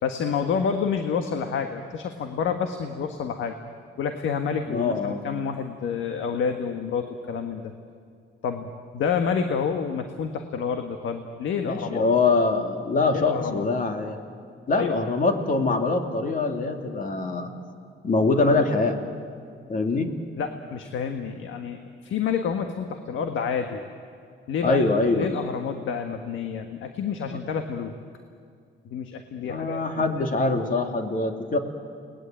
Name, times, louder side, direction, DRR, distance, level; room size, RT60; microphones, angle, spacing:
voice 1, 0.0-3.6 4.0-7.7 8.4-12.1 13.1-13.7 14.7-15.0 20.4-23.8 24.5-24.8 25.1-27.9 28.8-30.2, left 6 dB, 75° left, 6 dB, 1.5 m, -29 dB
voice 2, 4.7-5.2 11.6-14.2 14.7-17.5 18.0-19.0 19.7-20.1 24.6-25.3 27.3-27.4 29.4-31.6, left 3 dB, 45° left, 4 dB, 2.8 m, -24 dB
30.0 x 20.0 x 9.1 m, 2.2 s
cardioid pair, 90°, 20 cm